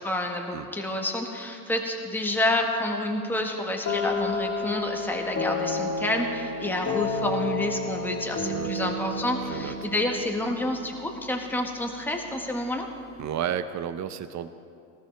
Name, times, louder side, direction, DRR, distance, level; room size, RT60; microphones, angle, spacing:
voice 1, 0.0-12.9, left 1 dB, 5° left, 2 dB, 1.5 m, -29 dB
sound 1, 3.9-11.6, left 2 dB, 35° left, 2.8 m, -31 dB
voice 2, 8.5-8.9 9.4-9.7 13.2-14.5, right 9 dB, 35° right, 12 dB, 0.8 m, -32 dB
19.0 x 13.5 x 3.4 m, 2.4 s
hypercardioid pair, 85°, 48 cm